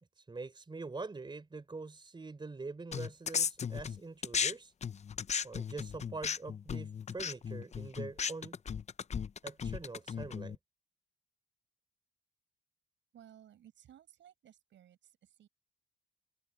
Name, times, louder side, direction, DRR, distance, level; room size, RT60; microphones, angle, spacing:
voice 1, 0.2-4.7 5.4-8.6 9.4-10.6, right 3 dB, 25° right, 3.6 m, -44 dB
sound 1, 2.9-4.5 4.8-10.6, left 7 dB, 35° left, 0.7 m, -36 dB
voice 2, 13.1-15.5, right 10 dB, 70° right, 7.4 m, -59 dB
cardioid pair, 90°, 20 cm